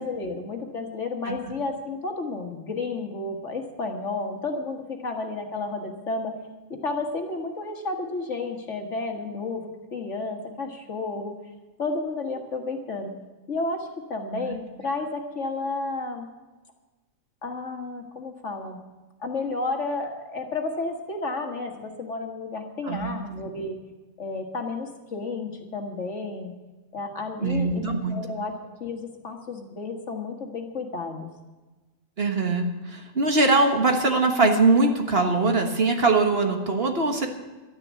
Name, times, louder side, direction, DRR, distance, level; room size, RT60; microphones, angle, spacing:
voice 1, 0.0-6.4 6.7-11.4 11.8-13.1 13.5-16.3 17.4-18.8 19.2-23.8 24.2-26.5 26.9-28.5 28.8-31.3, left 3 dB, 60° left, 3 dB, 1.9 m, -32 dB
voice 2, 22.9-23.2 27.4-28.2 32.2-37.3, right 3 dB, 50° right, 4 dB, 1.6 m, -22 dB
12.5 x 9.7 x 8.3 m, 1.2 s
omnidirectional pair, 1.4 m